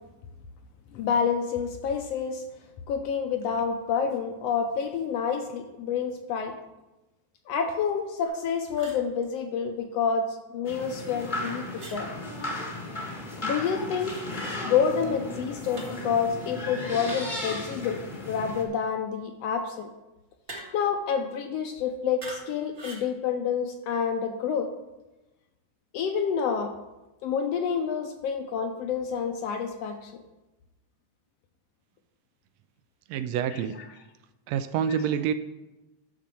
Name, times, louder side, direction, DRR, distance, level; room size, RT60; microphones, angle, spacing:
voice 1, 0.9-2.4 2.9-6.5 7.5-12.1 13.4-14.1 14.6-18.0 18.3-19.9 20.7-24.7 25.9-26.7 27.2-30.1 33.5-33.6, left 6 dB, 75° left, 5 dB, 1.6 m, -28 dB
sound 1, 8.2-8.4 8.7-9.0 11.7-12.0 14.0-14.3 15.7-16.0 17.1-17.4 20.5-20.9 22.2-22.5 22.7-23.1, right 2 dB, 30° right, 1.1 m, -43 dB
sound 2, 10.6-18.6, left 1 dB, 30° left, 0.8 m, -35 dB
voice 2, 33.1-33.7 34.5-35.3, right 8 dB, 80° right, 11 dB, 1.6 m, -27 dB
12.0 x 4.3 x 6.8 m, 1.0 s
omnidirectional pair, 3.3 m